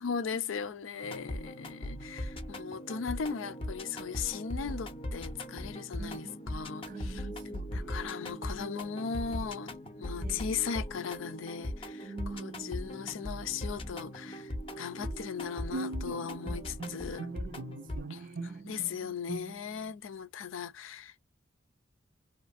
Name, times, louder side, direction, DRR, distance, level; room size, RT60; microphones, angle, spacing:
voice 1, 0.0-7.3 7.7-14.5 14.8-17.3 18.1-21.2, left 6 dB, 80° left, 0.5 m, -38 dB
sound 1, 1.0-18.0, left 1 dB, 30° left, 0.6 m, -39 dB
voice 2, 1.5-1.8 2.5-2.6 6.0-6.4 6.9-8.2 9.3-9.5 10.2-10.5 12.0-13.3 16.9-19.2, right 4 dB, 45° right, 0.3 m, -48 dB
Bowed string instrument, 15.0-19.9, right 3 dB, 80° right, 0.8 m, -41 dB
2.7 x 2.4 x 2.5 m
head